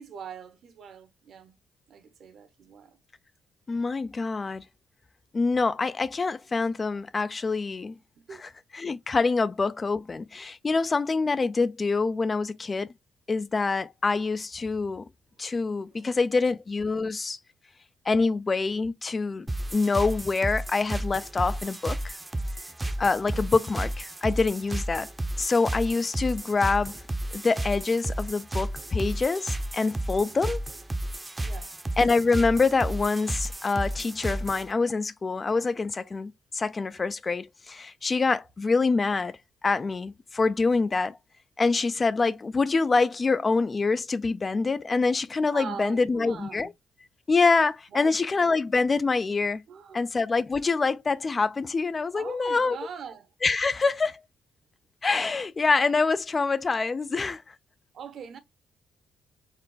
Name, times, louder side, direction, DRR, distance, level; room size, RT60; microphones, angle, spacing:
voice 1, 0.0-1.5 1.9-3.0 8.2-8.4 15.9-16.1 30.3-30.6 31.4-31.7 45.5-46.7 47.9-48.1 49.7-50.1 52.1-53.3 57.9-58.4, right 7 dB, 65° right, 1.1 m, -42 dB
voice 2, 3.7-4.6 5.3-7.9 8.4-12.9 13.3-15.1 15.4-17.4 18.1-22.1 23.0-25.1 25.4-27.0 27.3-30.6 32.0-39.4 39.6-41.2 41.6-46.7 47.3-49.6 49.9-52.8 53.4-54.2 55.0-57.5, left 4 dB, 30° left, 0.4 m, -25 dB
sound 1, 19.5-34.7, right 1 dB, 15° right, 0.7 m, -33 dB
4.5 x 2.4 x 3.9 m
cardioid pair, 90°, 0 cm